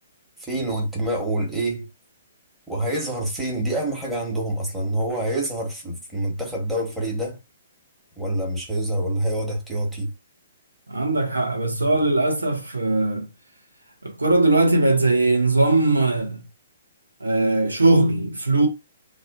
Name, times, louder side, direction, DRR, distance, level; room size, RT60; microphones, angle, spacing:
voice 1, 0.4-1.9 2.7-7.4 8.2-10.1, right 1 dB, 5° right, 1.0 m, -26 dB
voice 2, 10.9-13.3 14.0-16.4 17.2-18.7, right 2 dB, 85° right, 0.7 m, -20 dB
2.4 x 2.2 x 2.4 m
figure-of-eight pair, 125°, 0 cm